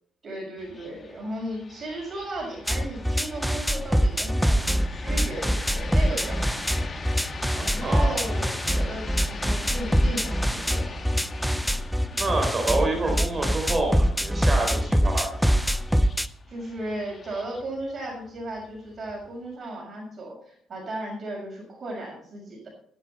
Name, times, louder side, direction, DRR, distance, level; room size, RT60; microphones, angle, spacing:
voice 1, 0.2-6.9 7.6-10.9 16.5-22.7, right 1 dB, 45° right, -1 dB, 6.5 m, -35 dB
sound 1, 0.6-19.5, left 4 dB, 40° left, 1.7 m, -42 dB
sound 2, 2.7-16.3, equal, ahead, 0.6 m, -24 dB
voice 2, 7.5-8.2 12.2-15.6, right 2 dB, 30° right, 3 dB, 3.7 m, -28 dB
14.0 x 11.5 x 4.2 m, 0.62 s
cardioid pair, 90°, 0 cm